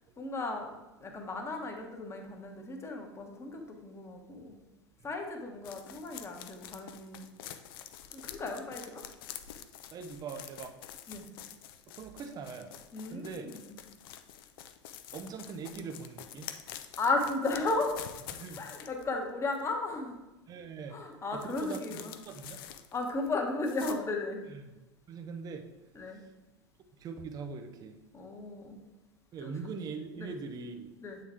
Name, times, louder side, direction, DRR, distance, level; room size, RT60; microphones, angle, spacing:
voice 1, 0.2-0.7 1.0-4.6 5.0-7.3 8.1-9.0 11.1-11.3 12.9-13.8 17.0-18.2 18.5-20.2 20.9-22.2 22.9-24.4 25.9-26.2 28.1-28.8 29.4-29.5 30.2-30.3 31.0-31.2, left 3 dB, 20° left, 3 dB, 1.1 m, -35 dB
sound 1, 5.6-19.1 19.5-19.6 21.3-23.3 23.6-24.0, left 10 dB, 55° left, 0.5 m, -47 dB
voice 2, 9.9-10.7 12.0-12.7 13.1-13.5 15.1-16.5 18.4-18.6 20.5-20.9 21.3-22.6 24.5-24.6 25.1-25.7 26.2-26.3 27.0-28.0 29.3-30.9, right 5 dB, 25° right, 6 dB, 0.5 m, -42 dB
8.1 x 3.7 x 3.5 m, 1.0 s
figure-of-eight pair, 80°, 15 cm